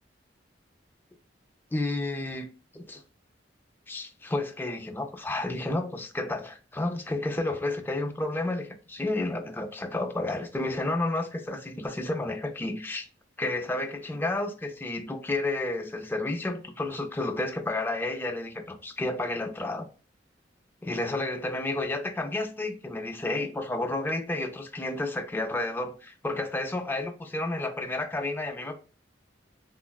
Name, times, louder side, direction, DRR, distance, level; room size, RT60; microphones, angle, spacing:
voice 1, 1.7-2.5 2.7-3.0 3.9-13.1 13.4-19.9 20.8-28.8, left 2 dB, 10° left, 0.3 m, -31 dB
3.6 x 2.2 x 2.2 m
head